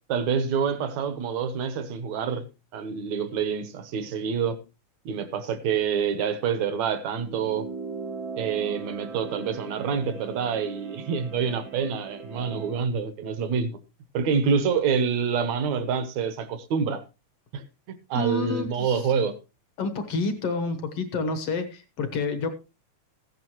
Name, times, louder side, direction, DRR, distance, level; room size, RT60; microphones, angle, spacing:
voice 1, 0.1-2.4 2.7-4.6 5.1-7.7 8.4-13.8 14.1-17.0 17.5-19.3, right 6 dB, 65° right, 12 dB, 2.3 m, -27 dB
sound 1, 7.1-12.8, right 4 dB, 45° right, 0.8 m, -39 dB
voice 2, 18.1-19.0 19.8-22.5, left 3 dB, 55° left, 8 dB, 1.9 m, -29 dB
15.0 x 10.5 x 3.1 m, 0.28 s
omnidirectional pair, 3.6 m